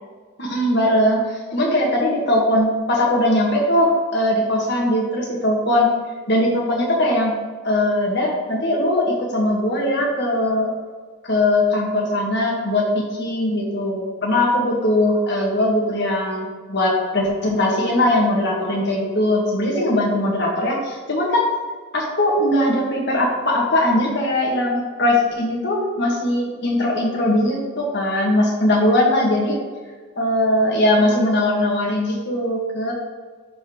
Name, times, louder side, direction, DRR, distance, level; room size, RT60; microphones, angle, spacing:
voice 1, 0.4-5.9 6.3-7.4 7.6-10.7 11.2-21.4 21.9-29.6 30.2-32.9, left 1 dB, 50° left, -2 dB, 1.5 m, -20 dB
11.0 x 3.9 x 3.0 m, 1.5 s
head